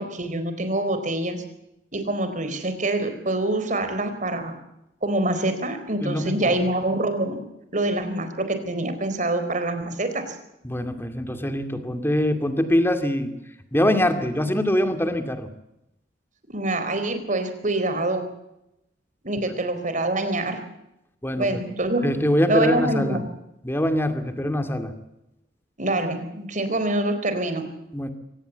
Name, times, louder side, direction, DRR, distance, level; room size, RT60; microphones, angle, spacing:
voice 1, 0.0-1.4 1.9-4.6 5.0-7.4 7.7-10.4 16.5-18.2 19.2-20.6 21.4-22.1 22.5-23.3 25.8-27.7, right 2 dB, 45° right, 9 dB, 4.1 m, -25 dB
voice 2, 6.0-6.7 10.6-13.4 13.7-15.5 21.2-21.6 22.0-23.2 23.6-24.9 27.9-28.1, left 1 dB, 15° left, 7 dB, 2.4 m, -23 dB
24.0 x 19.0 x 8.1 m, 0.86 s
head